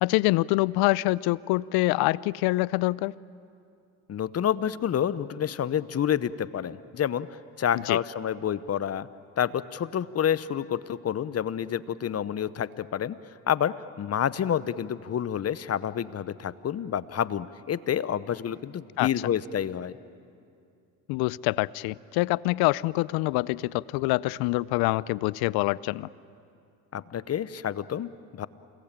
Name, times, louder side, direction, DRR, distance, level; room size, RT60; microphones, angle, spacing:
voice 1, 0.0-3.1 7.9-8.0 19.0-19.1 21.1-26.1, left 20 dB, 75° left, 22 dB, 0.6 m, -25 dB
voice 2, 4.1-7.3 7.6-9.1 9.4-13.2 13.5-20.0 26.9-28.5, left 9 dB, 40° left, 16 dB, 0.9 m, -28 dB
29.0 x 21.0 x 8.9 m, 2.5 s
supercardioid pair, 75°, 39 cm